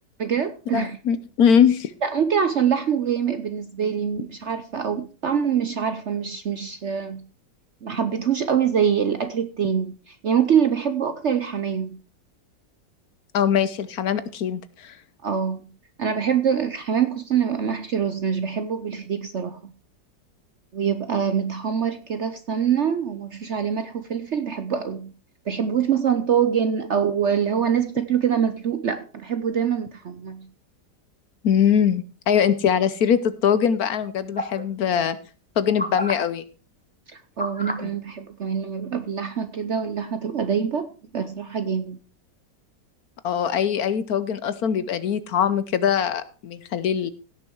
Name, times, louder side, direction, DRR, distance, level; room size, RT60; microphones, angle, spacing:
voice 1, 0.2-1.0 2.0-7.2 7.8-12.0 15.2-15.7 16.0-19.7 20.7-25.1 25.5-30.5 37.1-42.0, right 7 dB, 55° right, 10 dB, 0.8 m, -24 dB
voice 2, 0.7-1.9 13.3-15.0 31.4-35.2 35.6-36.4 37.8-37.9 43.2-47.1, left 8 dB, 65° left, 14 dB, 1.2 m, -22 dB
sound 1, 34.4-34.6 35.8-36.1 37.4-37.8 38.8-38.9, left 1 dB, 5° left, 1.0 m, -28 dB
16.5 x 6.8 x 4.6 m, 0.36 s
omnidirectional pair, 1.9 m